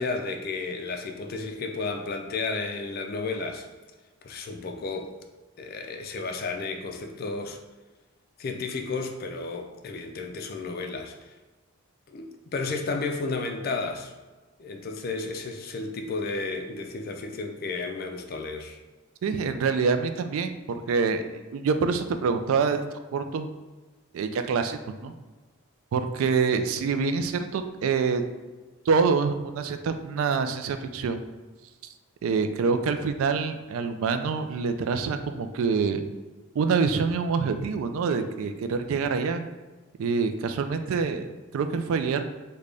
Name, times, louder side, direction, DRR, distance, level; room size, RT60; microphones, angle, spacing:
voice 1, 0.0-3.7 4.2-5.1 5.6-7.6 8.4-11.3 12.1-14.1 14.6-18.8, left 3 dB, 45° left, 5 dB, 0.3 m, -32 dB
voice 2, 19.2-21.2 21.5-22.8 23.1-23.5 24.1-25.1 25.9-28.2 28.9-31.2 32.2-36.0 36.5-39.4 40.0-42.2, right 5 dB, 75° right, 8 dB, 0.3 m, -26 dB
3.3 x 2.2 x 3.8 m, 1.2 s
head